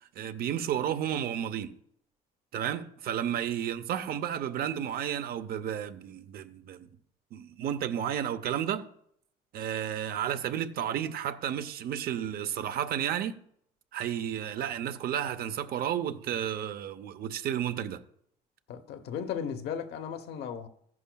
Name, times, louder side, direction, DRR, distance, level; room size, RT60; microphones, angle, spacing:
voice 1, 0.2-1.8 2.5-6.9 7.3-8.9 9.5-13.4 13.9-18.0, right 10 dB, 65° right, 0.8 m, -32 dB
voice 2, 18.7-20.7, left 8 dB, 75° left, 1.0 m, -36 dB
14.5 x 11.0 x 2.3 m
cardioid pair, 110°, 17 cm